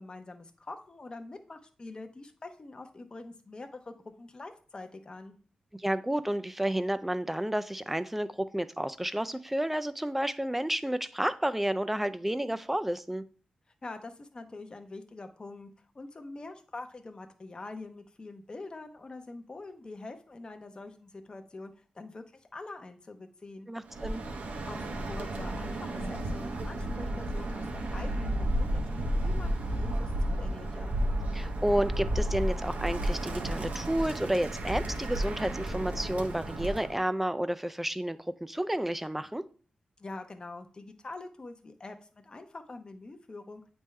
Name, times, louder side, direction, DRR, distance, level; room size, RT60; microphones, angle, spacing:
voice 1, 0.0-5.4 13.8-15.7 15.9-23.7 24.7-31.0 40.0-43.6, left 2 dB, 35° left, 6 dB, 0.7 m, -45 dB
voice 2, 5.7-13.2 23.7-24.2 31.3-39.4, right 1 dB, 5° right, 13 dB, 0.4 m, -31 dB
Bird, 23.9-37.0, right 1 dB, 70° right, 0.8 m, -32 dB
8.7 x 3.5 x 3.2 m, 0.41 s
wide cardioid pair, 90°, 3 cm